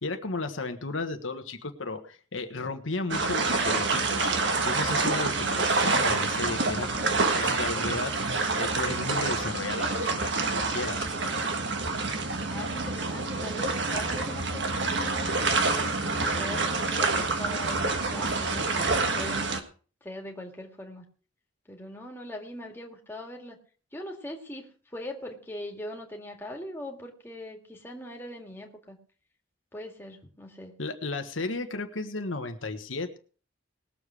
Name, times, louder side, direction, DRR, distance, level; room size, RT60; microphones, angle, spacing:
voice 1, 0.0-4.3 4.6-11.1 30.8-33.2, left 3 dB, 85° left, 6 dB, 1.4 m, -34 dB
sound 1, 3.1-19.6, right 3 dB, 65° right, 1.6 m, -27 dB
voice 2, 12.5-19.5 20.0-21.0 21.7-23.6 23.9-29.0 29.7-30.7, left 1 dB, 10° left, 1 dB, 2.0 m, -41 dB
20.0 x 7.3 x 4.9 m, 0.40 s
head